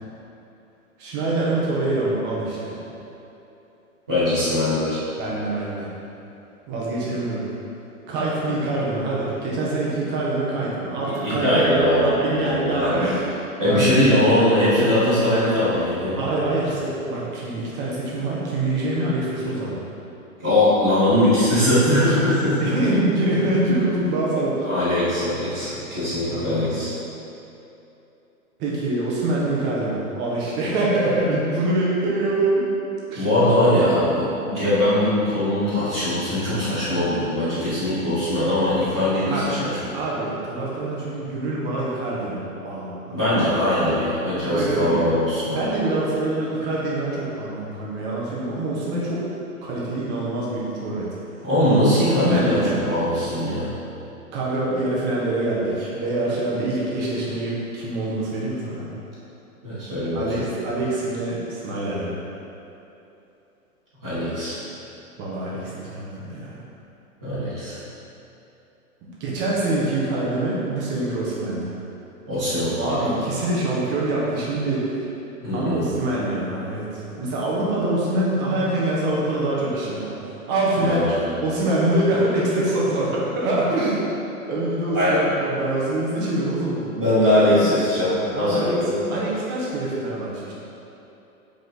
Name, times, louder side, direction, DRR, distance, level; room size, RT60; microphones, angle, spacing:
voice 1, 1.0-2.7 5.2-5.9 6.7-7.4 8.1-13.3 13.6-14.1 16.2-19.8 22.6-24.6 26.3-26.6 28.6-32.7 33.1-33.3 39.3-39.4 39.9-43.3 44.5-45.0 45.5-49.2 49.6-51.1 52.0-52.8 54.3-58.9 60.1-62.2 65.2-66.6 69.2-71.7 72.8-75.0 75.5-80.1 80.5-81.1 81.4-84.0 84.5-86.8 87.5-87.6 88.4-88.8 89.1-90.5, right 2 dB, 25° right, -5 dB, 1.5 m, -25 dB
voice 2, 4.1-5.0 11.0-13.0 13.6-16.2 20.4-22.7 24.6-26.9 33.1-39.7 43.1-45.8 51.4-53.7 59.6-60.5 64.0-64.6 67.2-67.8 72.3-73.2 75.4-75.8 80.8-81.3 84.9-85.2 86.1-86.3 86.9-89.0, left 1 dB, 5° right, -21 dB, 0.3 m, -21 dB
7.5 x 5.1 x 4.1 m, 2.9 s
hypercardioid pair, 145°, 45 cm